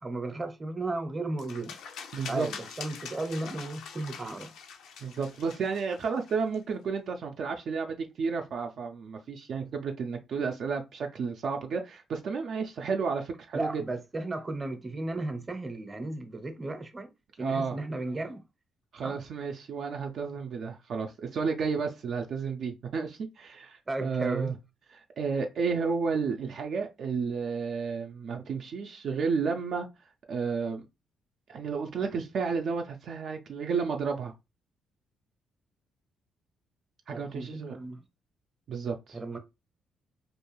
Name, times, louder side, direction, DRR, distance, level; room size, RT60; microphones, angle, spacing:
voice 1, 0.0-1.8 2.3-4.5 13.5-17.1 17.4-18.4 19.0-19.2 23.9-24.5 37.1-38.0 39.1-39.4, right 2 dB, 25° right, 0.6 m, -35 dB
sound 1, 1.4-6.6, left 6 dB, 85° left, 0.4 m, -44 dB
voice 2, 2.1-2.5 5.0-13.8 17.4-17.8 18.9-24.6 24.9-29.9 30.3-30.9 31.5-34.3 37.1-37.8 38.7-39.2, right 5 dB, 60° right, 0.3 m, -32 dB
2.4 x 2.2 x 3.0 m
cardioid pair, 90°, 0 cm